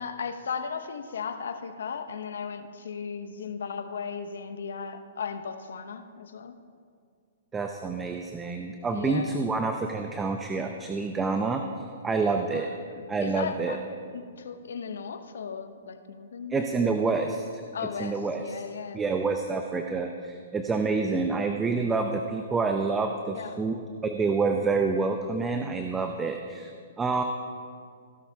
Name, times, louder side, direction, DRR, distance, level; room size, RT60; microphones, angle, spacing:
voice 1, 0.0-6.6 8.9-9.5 12.5-13.8 14.1-17.0 17.7-19.0 20.9-21.0 23.3-23.6, left 6 dB, 75° left, 9 dB, 0.9 m, -36 dB
voice 2, 7.5-11.6 12.0-12.7 13.1-13.8 16.5-17.6 18.0-18.4 18.9-26.7 27.0-27.2, right 4 dB, 15° right, 4 dB, 0.6 m, -28 dB
16.0 x 11.5 x 2.8 m, 2.2 s
hypercardioid pair, 130°, 0 cm